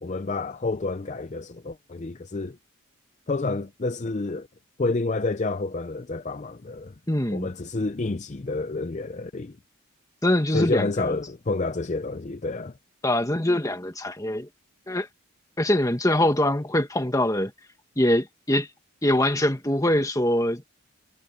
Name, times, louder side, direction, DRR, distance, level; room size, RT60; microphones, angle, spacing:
voice 1, 0.0-2.6 3.3-4.5 4.8-6.9 7.3-9.6 10.5-12.7, left 3 dB, 35° left, 0.5 m, -29 dB
voice 2, 7.1-7.5 10.2-11.1 13.0-14.5 14.9-15.1 15.6-17.5 18.0-18.7 19.0-20.6, left 1 dB, 15° left, 1.7 m, -23 dB
head